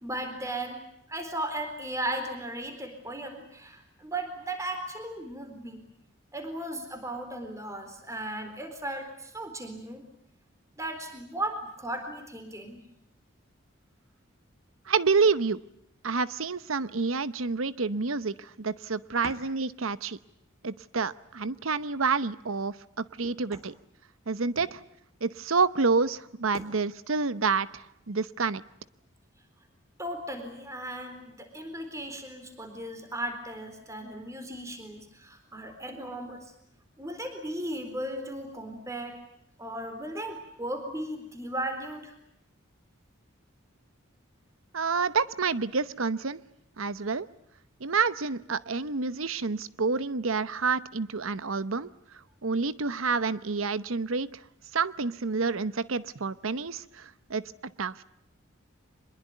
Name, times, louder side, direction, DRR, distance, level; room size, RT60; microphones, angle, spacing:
voice 1, 0.0-5.8 6.3-10.0 10.8-12.8 19.2-19.4 23.2-23.6 24.6-24.7 26.5-26.6 30.0-36.5 37.0-39.2 39.6-42.1, right 1 dB, 15° right, 7 dB, 4.0 m, -36 dB
voice 2, 14.9-15.6 16.0-20.2 20.6-23.7 24.3-24.8 25.2-28.6 44.7-46.4 46.8-47.3 47.8-51.9 52.4-54.3 54.7-57.0 57.3-57.5 57.8-58.0, right 4 dB, 85° right, 16 dB, 0.9 m, -28 dB
24.5 x 21.5 x 9.3 m, 0.76 s
head